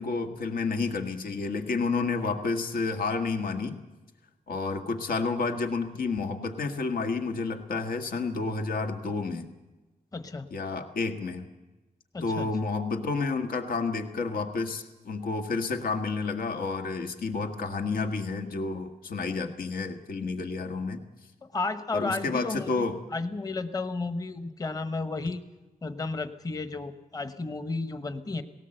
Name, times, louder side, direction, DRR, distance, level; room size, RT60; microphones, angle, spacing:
voice 1, 0.0-3.8 4.5-9.5 10.5-11.4 12.2-21.0 21.9-23.0, left 4 dB, 90° left, 5 dB, 1.8 m, -30 dB
voice 2, 10.1-10.5 12.1-12.5 21.4-22.8 23.1-25.4 25.8-28.4, left 3 dB, 25° left, 9 dB, 1.0 m, -33 dB
19.0 x 18.0 x 7.8 m, 1.1 s
wide cardioid pair, 150°, 14 cm